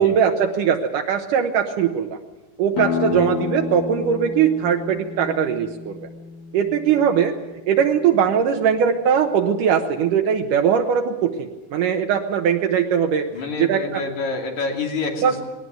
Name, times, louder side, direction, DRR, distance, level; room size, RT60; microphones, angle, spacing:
voice 1, 0.0-2.2 2.6-6.0 6.5-7.3 7.7-13.3 13.6-14.0 15.2-15.5, right 7 dB, 75° right, 3 dB, 2.6 m, -20 dB
sound 1, 2.7-8.1, left 7 dB, 85° left, 3.2 m, -31 dB
voice 2, 13.3-15.5, left 3 dB, 60° left, 2 dB, 4.0 m, -28 dB
19.5 x 18.5 x 9.2 m, 1.1 s
omnidirectional pair, 3.8 m